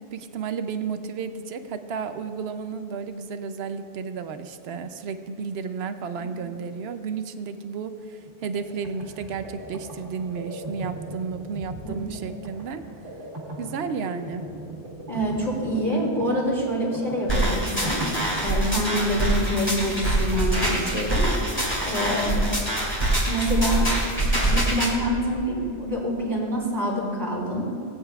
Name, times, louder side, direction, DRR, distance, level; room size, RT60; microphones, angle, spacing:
voice 1, 0.1-12.8 13.6-14.4, right 5 dB, 65° right, 9 dB, 0.8 m, -32 dB
sound 1, 8.3-19.1, right 1 dB, 85° right, 1.8 m, -39 dB
voice 2, 15.1-18.0 18.4-21.3 21.8-22.4 23.3-24.0 24.4-27.7, equal, 40° right, -4 dB, 3.0 m, -26 dB
sound 2, 17.3-24.9, right 1 dB, 10° left, 2.5 m, -24 dB
17.5 x 8.8 x 2.3 m, 2.7 s
omnidirectional pair, 1.2 m